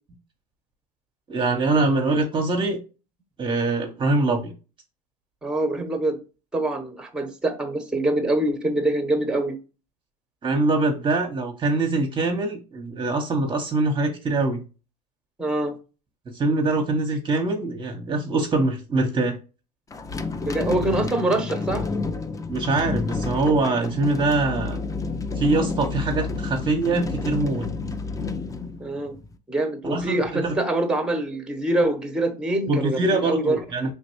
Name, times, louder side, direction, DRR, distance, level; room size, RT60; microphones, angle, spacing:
voice 1, 1.3-2.8 3.4-4.5 10.4-14.6 16.3-19.4 22.5-24.8 25.4-27.7 29.8-30.6 32.7-33.9, right 2 dB, 25° right, 1.0 m, -23 dB
voice 2, 5.4-6.2 6.5-9.6 15.4-15.7 20.4-21.8 28.8-29.2 29.5-33.6, right 1 dB, 5° right, 1.1 m, -24 dB
sound 1, 19.9-29.3, left 4 dB, 15° left, 0.5 m, -30 dB
5.0 x 3.5 x 3.0 m
hypercardioid pair, 80°, 21 cm